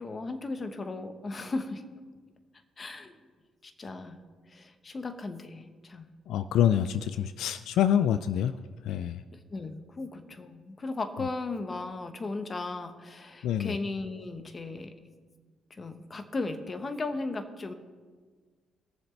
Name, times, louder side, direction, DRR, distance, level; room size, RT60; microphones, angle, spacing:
voice 1, 0.0-1.8 2.8-3.2 3.6-4.2 4.5-6.1 9.3-15.0 15.7-17.7, left 3 dB, 35° left, 8 dB, 1.0 m, -36 dB
voice 2, 6.3-8.6 8.8-9.2 13.4-13.8, left 10 dB, 80° left, 12 dB, 0.3 m, -26 dB
21.0 x 7.2 x 3.3 m, 1.5 s
cardioid pair, 90°, 0 cm